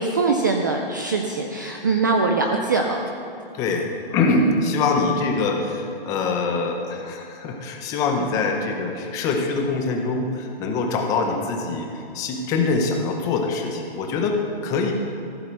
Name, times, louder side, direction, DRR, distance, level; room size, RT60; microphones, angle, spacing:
voice 1, 0.0-3.0, right 3 dB, 20° right, 2 dB, 0.4 m, -22 dB
voice 2, 3.5-14.9, left 3 dB, 10° left, 3 dB, 0.7 m, -24 dB
15.0 x 8.8 x 6.4 m, 2.7 s
hypercardioid pair, 165°, 29 cm